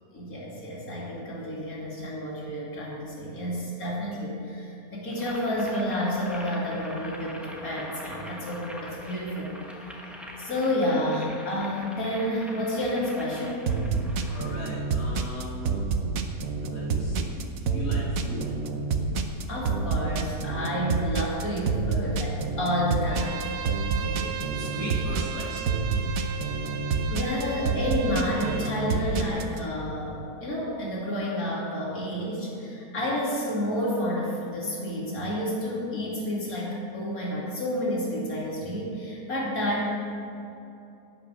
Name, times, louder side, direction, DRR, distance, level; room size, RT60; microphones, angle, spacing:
voice 1, 0.1-9.6 9.9-10.0 10.4-13.6 19.5-23.4 27.1-39.9, left 1 dB, 60° left, -5 dB, 3.1 m, -30 dB
Boiling, 5.1-14.5, left 1 dB, ahead, 0.9 m, -43 dB
sound 1, 13.7-29.6, right 4 dB, 65° right, 1.2 m, -28 dB
voice 2, 14.3-15.8 16.7-18.6 23.9-25.7, equal, 85° left, -7 dB, 2.1 m, -38 dB
Bowed string instrument, 23.1-28.7, right 7 dB, 85° right, 1.2 m, -37 dB
11.5 x 5.9 x 8.0 m, 2.8 s
omnidirectional pair, 1.7 m